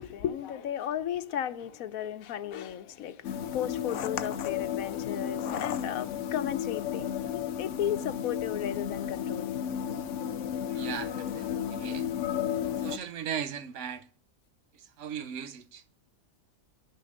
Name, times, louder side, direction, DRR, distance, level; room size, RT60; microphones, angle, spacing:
voice 1, 0.0-9.6, left 10 dB, 90° left, 1.2 m, -35 dB
sound 1, 3.2-13.0, left 9 dB, 65° left, 1.0 m, -33 dB
voice 2, 10.7-12.1 12.8-14.1 15.0-15.8, right 8 dB, 65° right, 1.1 m, -37 dB
10.5 x 6.7 x 6.5 m
omnidirectional pair, 1.4 m